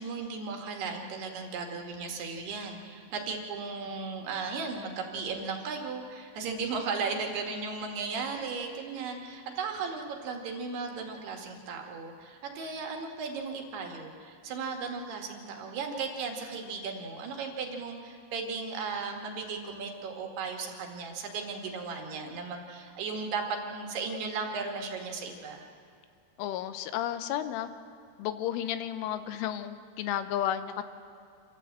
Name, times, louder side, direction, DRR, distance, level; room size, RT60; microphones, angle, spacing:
voice 1, 0.0-25.6, right 4 dB, 65° right, 2 dB, 3.3 m, -36 dB
voice 2, 26.4-27.7 28.2-30.8, left 11 dB, 90° left, 11 dB, 3.4 m, -32 dB
27.0 x 14.0 x 8.0 m, 2.3 s
omnidirectional pair, 5.5 m